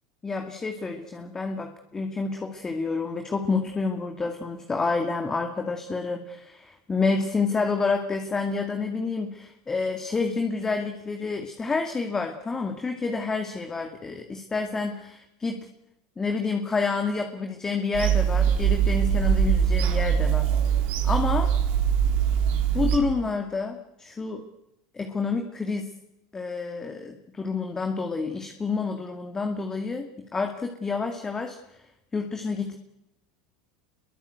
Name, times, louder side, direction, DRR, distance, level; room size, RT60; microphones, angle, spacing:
voice 1, 0.2-15.7 16.2-20.5 21.0-21.5 22.7-24.5 24.9-25.9 26.3-31.9 32.1-32.8, left 4 dB, 20° left, 5 dB, 2.3 m, -29 dB
Bird vocalization bird call bird song / Telephone, 17.9-23.0, right 8 dB, 60° right, 3.6 m, -22 dB
25.5 x 22.5 x 8.1 m, 0.88 s
hypercardioid pair, 95°, 3 cm